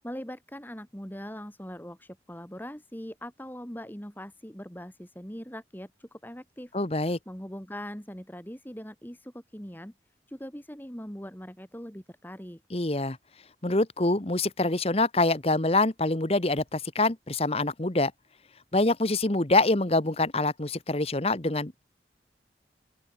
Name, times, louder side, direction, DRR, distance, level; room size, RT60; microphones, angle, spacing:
voice 1, 0.0-6.7 7.2-9.9 10.3-12.6, equal, 10° left, 3.3 m, -41 dB
voice 2, 6.7-7.2 12.7-13.2 13.6-18.1 18.7-21.8, left 2 dB, 35° left, 1.3 m, -25 dB
open air
head